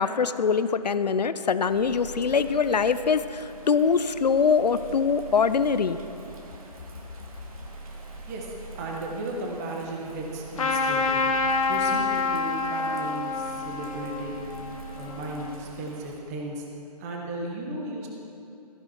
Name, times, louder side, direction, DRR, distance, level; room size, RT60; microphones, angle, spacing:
voice 1, 0.0-6.0, left 6 dB, 80° left, 13 dB, 0.6 m, -23 dB
Bird vocalization bird call bird song / Rain, 1.5-16.1, right 3 dB, 60° right, 2.3 m, -43 dB
voice 2, 8.2-11.3 11.7-14.5 14.9-16.6 17.0-18.1, right 2 dB, 25° right, -1 dB, 1.3 m, -35 dB
Trumpet, 10.6-15.6, left 4 dB, 55° left, 1.0 m, -27 dB
14.5 x 10.0 x 4.5 m, 2.9 s
hypercardioid pair, 155°, 21 cm